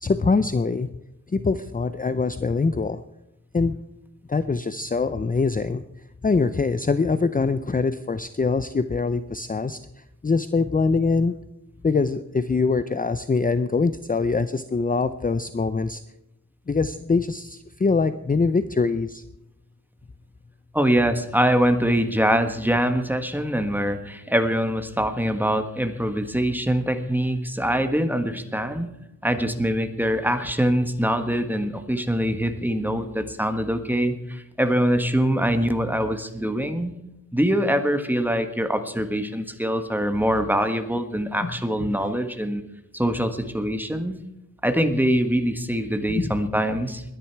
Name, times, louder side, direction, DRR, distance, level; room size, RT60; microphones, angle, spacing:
voice 1, 0.0-0.9 1.3-3.0 3.5-3.8 4.3-5.8 6.2-11.3 11.8-16.0 16.7-19.2 41.4-41.5 46.1-46.4, left 4 dB, 25° left, 13 dB, 0.5 m, -23 dB
voice 2, 20.7-28.9 29.2-36.9 37.3-42.6 42.9-44.1 44.6-47.0, equal, 5° right, 8 dB, 1.5 m, -23 dB
21.5 x 10.5 x 4.6 m, 0.88 s
wide cardioid pair, 80°, 33 cm